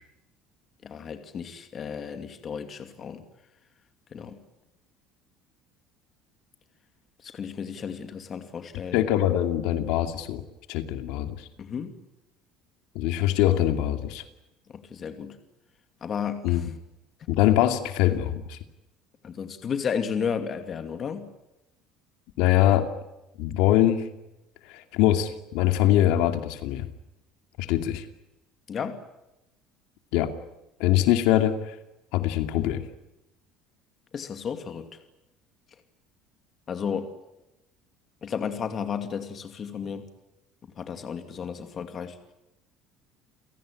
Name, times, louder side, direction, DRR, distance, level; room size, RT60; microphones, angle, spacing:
voice 1, 0.8-3.2 4.1-4.4 7.2-9.0 11.6-12.0 14.7-15.4 16.0-16.7 19.2-21.3 28.7-29.0 34.1-35.0 36.7-37.1 38.2-40.1 40.8-42.2, left 7 dB, 30° left, 8 dB, 2.5 m, -33 dB
voice 2, 8.9-10.4 10.7-11.5 12.9-14.2 16.4-16.6 17.3-18.6 22.4-22.9 23.4-24.1 24.7-26.9 27.6-28.0 30.1-30.3 30.8-31.7 32.1-32.8, left 12 dB, 75° left, 8 dB, 2.5 m, -23 dB
30.0 x 18.0 x 10.0 m, 0.92 s
cardioid pair, 160°, 0 cm